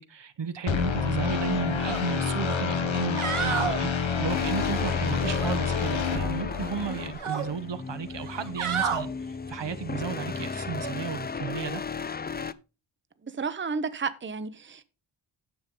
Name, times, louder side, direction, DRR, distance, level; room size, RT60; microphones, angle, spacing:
voice 1, 0.0-11.8, right 6 dB, 60° right, 0.9 m, -33 dB
sound 1, 0.7-7.1, left 6 dB, 65° left, 1.3 m, -28 dB
sound 2, 1.8-2.0 2.4-2.5 3.0-3.8 5.2-6.2 6.5-7.5 8.2-9.0 10.7-10.9, right 6 dB, 80° right, 1.7 m, -31 dB
sound 3, 4.3-12.5, left 5 dB, 20° left, 0.4 m, -36 dB
voice 2, 13.4-14.8, right 5 dB, 25° right, 0.8 m, -32 dB
9.9 x 7.0 x 3.8 m
wide cardioid pair, 80°, 49 cm